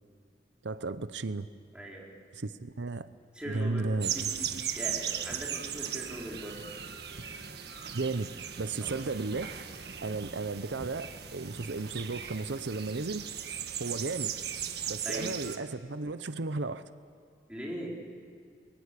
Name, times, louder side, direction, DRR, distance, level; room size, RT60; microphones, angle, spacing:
voice 1, 0.6-1.5 2.3-3.1 3.4-4.6 7.9-8.3 8.6-13.2 13.8-14.4 14.9-16.8, right 3 dB, 85° right, 12 dB, 0.8 m, -34 dB
voice 2, 1.7-2.1 3.3-3.9 4.1-4.5 4.8-6.6 8.8-8.9 15.0-15.3 17.5-17.9, right 1 dB, 5° right, -4 dB, 4.2 m, -40 dB
sound 1, 4.0-15.6, right 8 dB, 65° right, 1.6 m, -38 dB
29.0 x 21.5 x 8.4 m, 2.2 s
head